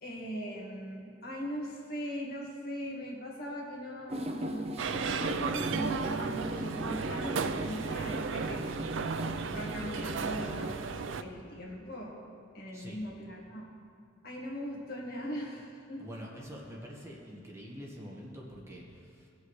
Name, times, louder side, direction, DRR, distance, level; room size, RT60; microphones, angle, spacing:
voice 1, 0.0-4.8 5.2-8.7 9.4-10.8 11.2-12.2 12.5-13.7 14.2-16.0, equal, 55° left, -2 dB, 1.8 m, -40 dB
sound 1, 4.1-10.8, right 1 dB, 35° right, 0.6 m, -37 dB
sound 2, 4.8-11.2, right 5 dB, 80° right, 0.5 m, -35 dB
voice 2, 16.0-19.3, equal, 15° right, -3 dB, 1.4 m, -46 dB
18.0 x 6.9 x 3.2 m, 2.4 s
head